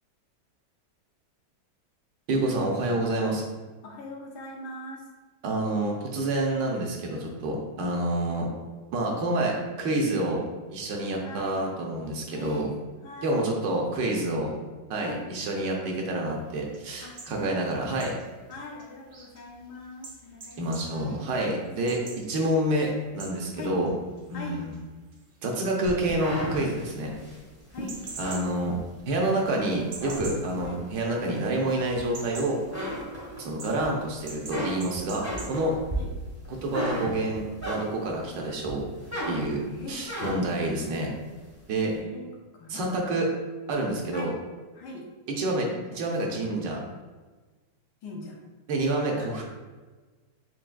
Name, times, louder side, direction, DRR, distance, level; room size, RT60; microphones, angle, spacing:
voice 1, 2.3-3.4 5.4-8.5 8.9-10.4 10.7-12.7 13.2-14.5 14.9-18.1 20.6-23.9 24.3-24.7 25.4-27.1 28.2-28.8 29.1-32.6 33.4-35.8 36.5-38.9 39.3-39.6 39.9-41.1 41.7-41.9 42.7-43.3 43.7-44.3 45.3-46.8 48.7-49.4, right 1 dB, 75° right, 0 dB, 1.4 m, -28 dB
voice 2, 3.8-5.1 11.2-11.7 12.3-12.7 13.0-13.5 15.0-15.3 17.0-17.2 18.5-21.7 23.5-23.9 24.3-24.7 27.7-28.0 30.6-30.9 35.3-35.5 35.9-36.1 39.7-40.1 41.8-43.3 44.1-44.4 44.7-45.0 48.0-48.4 49.2-49.3, left 2 dB, 70° left, -1 dB, 1.2 m, -42 dB
sound 1, 16.3-31.5 31.8-35.6, right 3 dB, 55° right, 0.7 m, -46 dB
sound 2, 25.8-29.3 29.7-30.8 31.3-32.3 32.6-33.9 34.2-38.2 38.6-40.6, equal, 20° right, 0.7 m, -34 dB
4.7 x 3.3 x 2.2 m, 1.3 s
omnidirectional pair, 2.0 m